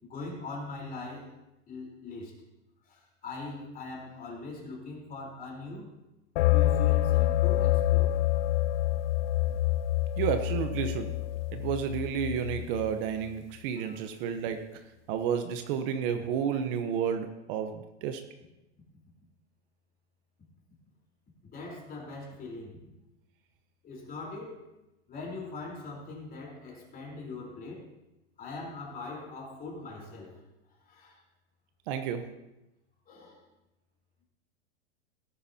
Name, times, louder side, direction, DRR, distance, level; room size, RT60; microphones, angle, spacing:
voice 1, 0.0-1.4 1.7-2.4 2.9-6.0 6.5-8.2 9.4-9.6 13.8-14.0 21.4-22.8 23.8-24.7 25.1-27.9 28.4-30.5 30.8-31.2 33.0-33.5, left 3 dB, 25° left, -2 dB, 3.9 m, -42 dB
sound 1, 6.4-12.9, left 14 dB, 55° left, 0.6 m, -26 dB
voice 2, 10.2-11.1 11.5-14.8 15.1-18.2 31.9-32.2, right 8 dB, 50° right, 7 dB, 1.0 m, -31 dB
17.5 x 9.6 x 2.8 m, 0.95 s
supercardioid pair, 135°, 35 cm